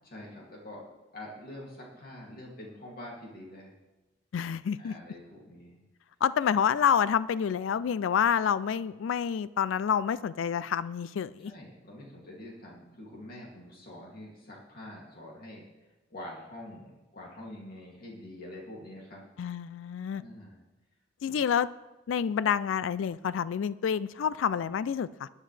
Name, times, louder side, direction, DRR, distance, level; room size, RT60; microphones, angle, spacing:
voice 1, 0.0-0.8 1.1-3.7 4.8-5.8 11.4-15.6 16.1-19.2 20.1-20.6 21.3-21.4, left 1 dB, 50° left, -3 dB, 2.5 m, -45 dB
voice 2, 4.3-4.9 6.2-11.5 19.4-20.2 21.2-21.7 22.1-25.3, left 7 dB, 85° left, 17 dB, 0.3 m, -28 dB
20.0 x 9.7 x 3.3 m, 1.1 s
head